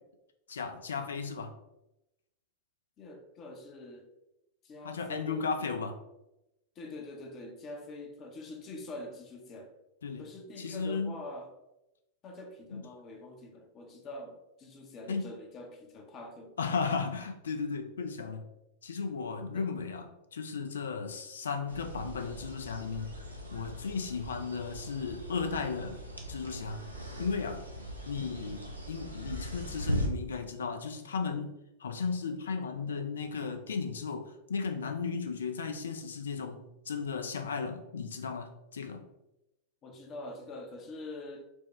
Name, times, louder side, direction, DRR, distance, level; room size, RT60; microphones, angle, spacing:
voice 1, 0.5-1.5 4.8-6.0 10.0-10.3 10.6-11.1 12.7-12.8 15.1-15.2 16.6-18.5 18.8-23.1 23.5-26.0 26.3-26.9 27.2-27.6 28.1-39.1, left 5 dB, 65° left, 0.4 m, -35 dB
voice 2, 3.0-4.1 4.6-5.5 6.8-9.7 10.2-11.5 12.2-16.6 19.5-19.7 39.8-41.4, left 2 dB, 30° left, 0.7 m, -44 dB
sound 1, 21.7-30.1, equal, 85° right, 0.5 m, -39 dB
4.4 x 2.1 x 3.1 m
figure-of-eight pair, 90°, 0 cm